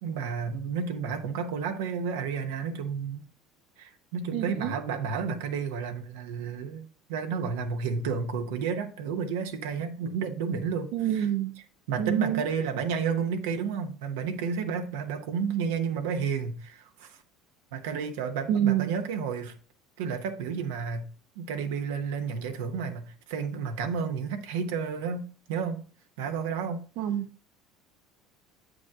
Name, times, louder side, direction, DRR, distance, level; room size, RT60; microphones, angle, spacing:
voice 1, 0.0-3.2 3.8-11.3 11.9-17.2 17.7-19.5 20.0-21.1 21.4-25.8 26.2-26.8, right 6 dB, 85° right, 0.9 m, -31 dB
voice 2, 4.3-4.7 10.9-11.5 12.0-12.5 18.5-18.9 27.0-27.3, right 10 dB, 65° right, 0.5 m, -27 dB
7.6 x 5.2 x 3.5 m
supercardioid pair, 100°, 0 cm